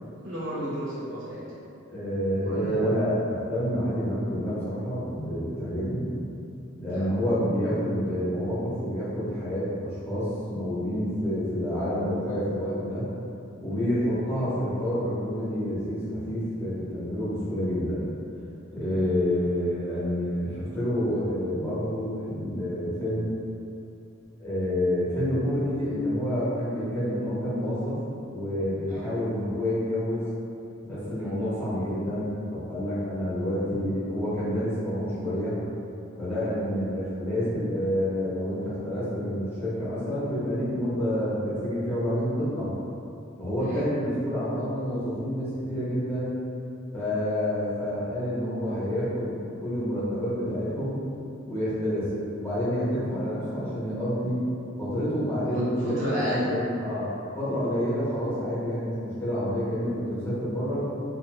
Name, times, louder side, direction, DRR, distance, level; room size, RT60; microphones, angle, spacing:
voice 1, 0.2-1.4 2.3-3.0 6.9-7.1 28.9-29.1 31.2-31.3 36.3-36.5 43.6-43.8 55.5-56.5, right 1 dB, 65° right, -9 dB, 0.6 m, -31 dB
voice 2, 1.9-6.1 6.7-13.1 13.6-18.1 18.7-23.3 24.4-28.0 28.3-30.3 30.8-35.6 36.2-42.7 43.4-46.3 46.9-51.0 51.4-52.1 52.3-54.4 54.8-57.1 57.3-60.9, equal, 10° left, -12 dB, 0.8 m, -28 dB
2.7 x 2.1 x 2.9 m, 2.7 s
head